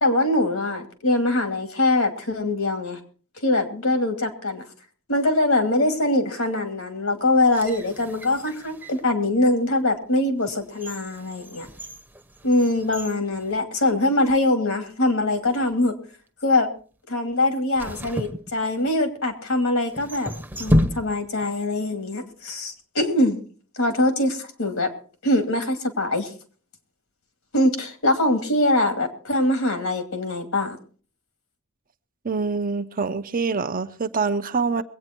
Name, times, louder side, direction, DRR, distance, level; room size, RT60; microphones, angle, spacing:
voice 1, 0.0-3.0 3.4-4.6 5.1-11.7 12.4-15.9 16.4-16.7 17.1-20.3 20.6-23.4 23.8-24.9 25.2-26.3 27.5-30.8, left 2 dB, 70° left, 2.6 m, -23 dB
sound 1, 7.3-9.1 9.7-9.8 10.4-14.2 14.4-14.5 15.4-15.8 17.7-19.1 19.9-21.5 21.7-21.8, equal, 10° right, 0.9 m, -30 dB
voice 2, 32.2-34.8, right 4 dB, 40° right, 0.7 m, -25 dB
22.5 x 8.9 x 4.5 m
head